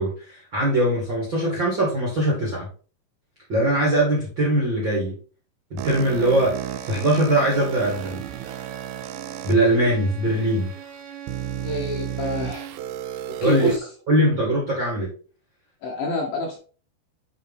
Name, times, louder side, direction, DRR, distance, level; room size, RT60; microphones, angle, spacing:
voice 1, 0.0-2.7 3.5-5.1 5.7-6.5 6.8-8.2 9.4-10.7 13.4-13.7 14.1-15.1, right 1 dB, 40° right, -4 dB, 1.7 m, -21 dB
sound 1, 5.8-9.5 10.3-10.4 11.3-13.8, right 11 dB, 90° right, 2.3 m, -33 dB
Bowed string instrument, 5.9-12.9, right 8 dB, 75° right, 2.7 m, -41 dB
voice 2, 11.6-12.7 13.4-13.8 15.8-16.6, left 2 dB, 70° left, 0 dB, 2.3 m, -28 dB
8.4 x 4.1 x 3.6 m, 0.39 s
omnidirectional pair, 5.1 m